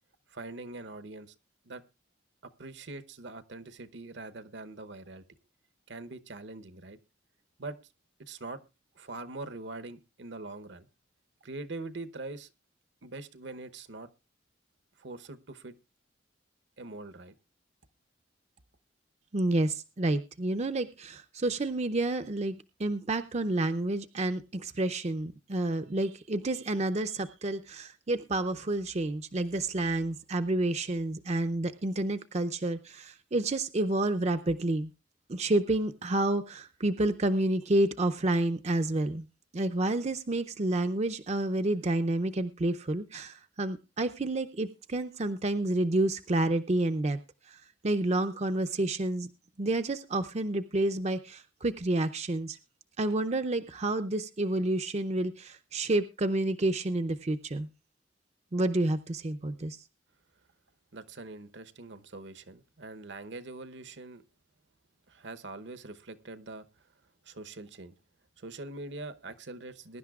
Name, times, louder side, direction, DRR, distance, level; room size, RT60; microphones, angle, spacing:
voice 1, 0.3-1.3 1.6-1.8 2.4-5.2 5.9-7.0 7.6-7.8 8.2-8.6 9.0-10.9 11.4-12.5 13.0-14.1 15.0-15.8 16.8-17.3 60.9-64.2 65.1-66.8 67.2-67.9 68.4-70.0, right 2 dB, 65° right, 12 dB, 0.9 m, -43 dB
voice 2, 19.3-34.9 35.3-39.3 39.5-47.2 47.5-49.3 49.6-52.6 53.0-57.7 58.5-59.8, right 2 dB, 35° right, 8 dB, 0.6 m, -29 dB
21.5 x 11.0 x 2.4 m, 0.27 s
head